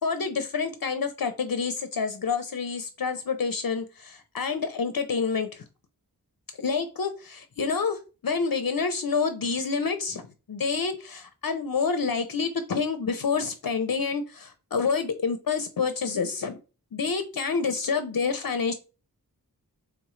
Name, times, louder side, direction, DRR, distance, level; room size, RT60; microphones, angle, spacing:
voice 1, 0.0-5.7 6.6-16.6 16.9-18.7, left 5 dB, 65° left, 9 dB, 0.6 m, -28 dB
4.6 x 3.4 x 3.1 m, 0.33 s
wide cardioid pair, 55°, 37 cm